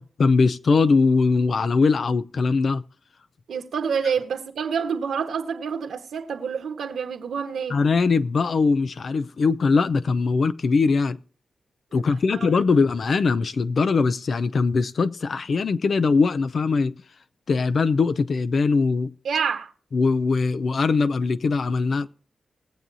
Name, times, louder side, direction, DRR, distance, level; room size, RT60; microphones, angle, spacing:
voice 1, 0.0-2.8 7.7-11.2 11.9-17.0 17.5-19.1 19.9-22.1, left 4 dB, 65° left, 0.6 m, -21 dB
voice 2, 3.5-7.8 11.9-12.0 12.3-12.5 19.2-19.7, right 6 dB, 80° right, 1.5 m, -27 dB
20.5 x 7.5 x 2.7 m
supercardioid pair, 45°, 0 cm